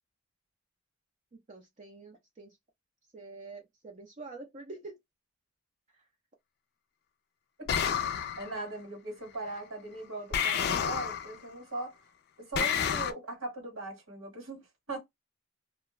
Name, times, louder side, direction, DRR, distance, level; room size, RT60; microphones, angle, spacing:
voice 1, 1.3-2.6 3.1-5.0 5.9-6.0, right 3 dB, 35° right, 0.4 m, -47 dB
sound 1, 7.7-8.5 10.3-11.4 12.5-13.1, left 8 dB, 50° left, 0.3 m, -29 dB
voice 2, 8.4-12.0 12.4-15.0, right 2 dB, 80° right, 1.4 m, -39 dB
2.3 x 2.1 x 3.0 m
head